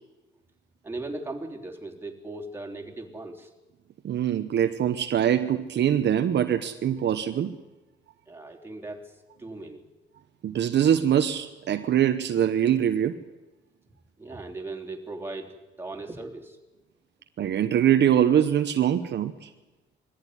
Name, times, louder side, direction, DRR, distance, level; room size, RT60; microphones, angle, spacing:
voice 1, 0.8-3.5 8.3-9.1 9.4-9.8 14.2-16.6, right 2 dB, 10° right, 0 dB, 3.3 m, -38 dB
voice 2, 4.0-7.6 10.4-13.2 17.4-19.5, right 10 dB, 60° right, 7 dB, 1.1 m, -23 dB
21.0 x 15.0 x 10.0 m, 1.1 s
cardioid pair, 90°, 20 cm